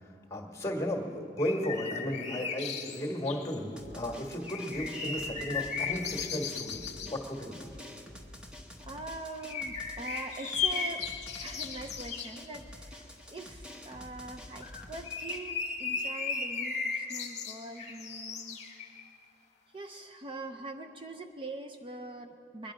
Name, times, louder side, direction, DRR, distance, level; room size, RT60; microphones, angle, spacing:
voice 1, 0.3-7.7, left 1 dB, 20° left, 2 dB, 1.7 m, -34 dB
sound 1, 1.4-3.6 4.4-7.2 9.4-12.4 14.6-19.2, left 5 dB, 40° left, 1.2 m, -36 dB
Drum, 3.8-15.4, left 1 dB, 5° right, 0.9 m, -48 dB
voice 2, 8.8-11.0 11.4-18.6 19.7-22.7, right 2 dB, 30° right, 5 dB, 0.5 m, -43 dB
22.0 x 11.0 x 5.0 m, 2.8 s
head